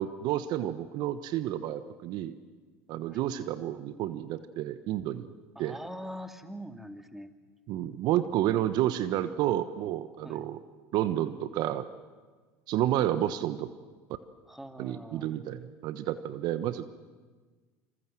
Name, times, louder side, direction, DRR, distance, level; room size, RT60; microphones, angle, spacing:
voice 1, 0.0-2.3 2.9-5.3 5.6-5.8 7.7-10.6 10.9-11.9 12.7-13.7 14.8-16.9, right 12 dB, 60° right, 12 dB, 1.2 m, -30 dB
voice 2, 5.6-7.3 10.2-10.5 14.5-15.3, equal, 5° right, 7 dB, 2.5 m, -43 dB
26.5 x 26.5 x 7.7 m, 1.4 s
hypercardioid pair, 75°, 8 cm